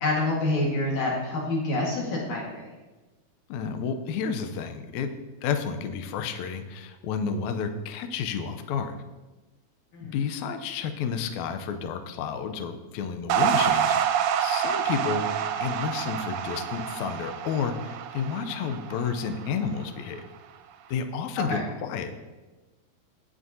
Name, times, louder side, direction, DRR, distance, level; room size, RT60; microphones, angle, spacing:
voice 1, 0.0-2.7 9.9-10.1 21.4-21.6, left 2 dB, 60° left, -3 dB, 2.9 m, -27 dB
voice 2, 3.5-5.1 5.4-9.0 10.0-14.0 14.4-20.3 20.9-22.2, left 6 dB, 85° left, 8 dB, 1.6 m, -31 dB
sound 1, 13.3-19.8, right 9 dB, 80° right, 2.1 m, -27 dB
16.0 x 6.2 x 2.7 m, 1.2 s
omnidirectional pair, 4.1 m